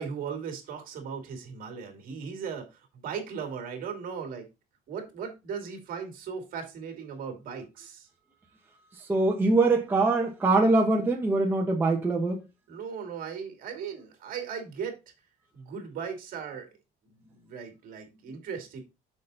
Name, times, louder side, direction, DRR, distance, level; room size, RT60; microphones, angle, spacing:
voice 1, 0.0-4.5 4.9-8.1 12.7-15.0 15.5-16.7 17.3-18.8, right 6 dB, 55° right, 2.4 m, -37 dB
voice 2, 9.1-12.4, right 3 dB, 10° right, 1.1 m, -23 dB
6.6 x 5.2 x 4.0 m
cardioid pair, 155°, 17 cm